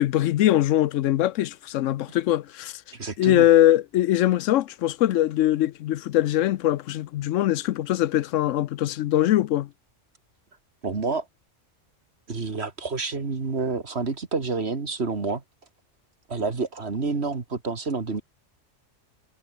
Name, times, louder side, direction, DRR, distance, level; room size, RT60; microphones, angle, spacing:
voice 1, 0.0-2.8 3.2-9.7, left 13 dB, 80° left, 0.9 m, -22 dB
voice 2, 2.9-3.5 10.8-11.3 12.3-15.4 16.3-18.2, right 4 dB, 55° right, 2.3 m, -28 dB
omnidirectional pair, 1.3 m